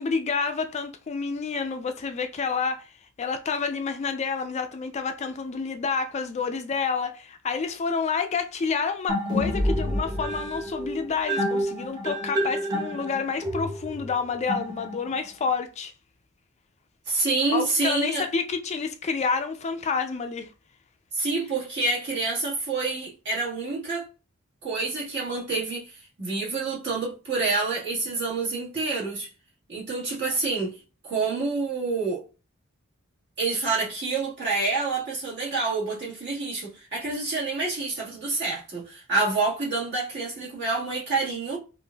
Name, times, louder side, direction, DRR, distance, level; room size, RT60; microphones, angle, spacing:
voice 1, 0.0-15.9 17.5-20.5, left 5 dB, 30° left, 0.3 m, -29 dB
sound 1, 9.1-15.3, equal, 20° right, 0.9 m, -28 dB
voice 2, 17.1-18.3 21.1-24.1 24.6-25.9 26.2-29.3 29.7-30.8 31.0-32.2 33.4-41.6, right 3 dB, 55° right, 1.6 m, -27 dB
4.8 x 2.5 x 2.3 m
head